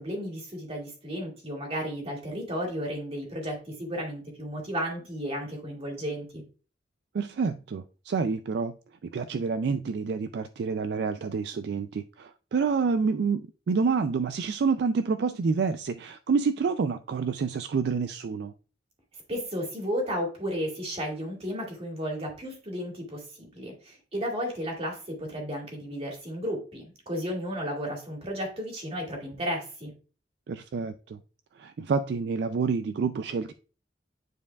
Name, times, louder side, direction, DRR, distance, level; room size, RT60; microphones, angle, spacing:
voice 1, 0.0-6.4 19.3-29.9, equal, 35° right, 0 dB, 2.1 m, -33 dB
voice 2, 7.1-8.7 9.1-18.5 30.5-31.2 31.6-33.5, right 5 dB, 65° right, 11 dB, 0.3 m, -28 dB
9.5 x 4.6 x 2.3 m, 0.37 s
head